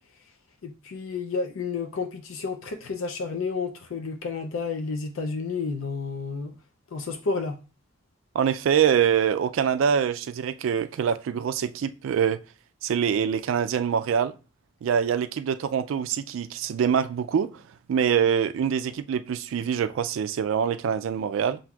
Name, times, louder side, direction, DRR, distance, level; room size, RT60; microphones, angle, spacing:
voice 1, 0.6-6.5 6.9-7.6, left 4 dB, 75° left, 0.5 m, -31 dB
voice 2, 8.3-12.4 12.8-14.3 14.8-17.5 17.9-21.6, right 8 dB, 70° right, 0.3 m, -24 dB
7.3 x 2.5 x 2.3 m
head